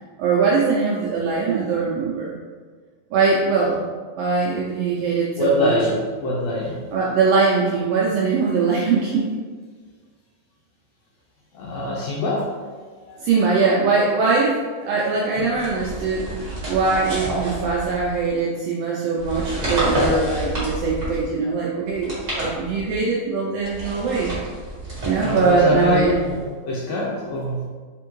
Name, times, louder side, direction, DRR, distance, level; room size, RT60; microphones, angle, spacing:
voice 1, 0.2-2.3 3.1-3.8 4.2-5.7 6.9-9.3 13.2-24.3 25.0-26.2, right 4 dB, 85° right, -4 dB, 1.4 m, -21 dB
voice 2, 5.4-6.8 11.5-13.3 15.3-15.7 25.2-27.7, left 1 dB, 80° left, -4 dB, 1.5 m, -25 dB
sound 1, 15.5-18.3 19.1-21.4 21.9-23.0 23.6-26.5, right 1 dB, 45° right, 0.9 m, -29 dB
4.2 x 3.5 x 3.0 m, 1.5 s
omnidirectional pair, 3.4 m